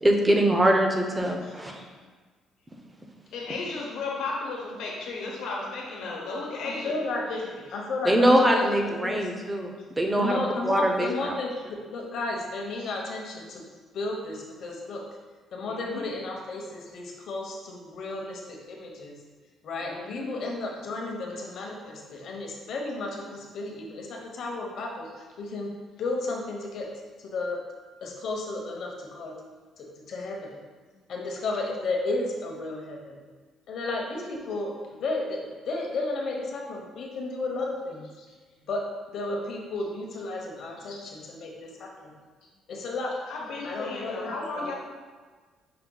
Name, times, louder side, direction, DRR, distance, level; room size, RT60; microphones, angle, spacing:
voice 1, 0.0-1.7 8.1-10.4 10.6-11.3, right 1 dB, 15° right, 2 dB, 0.5 m, -23 dB
voice 2, 1.4-1.9 3.3-6.9 7.3-7.6 15.6-16.1 19.8-20.3 40.9-41.0 43.3-44.7, left 3 dB, 85° left, -2 dB, 1.0 m, -35 dB
voice 3, 6.6-7.3 7.7-9.3 10.2-13.7 13.9-15.0 15.5-19.2 19.6-25.7 26.0-26.9 27.2-27.6 28.0-29.4 29.8-30.6 31.1-33.2 33.7-38.1 38.7-42.1 42.7-43.1 43.6-44.7, left 2 dB, 60° left, 0 dB, 0.8 m, -33 dB
5.7 x 2.2 x 3.8 m, 1.4 s
cardioid pair, 125°, 0 cm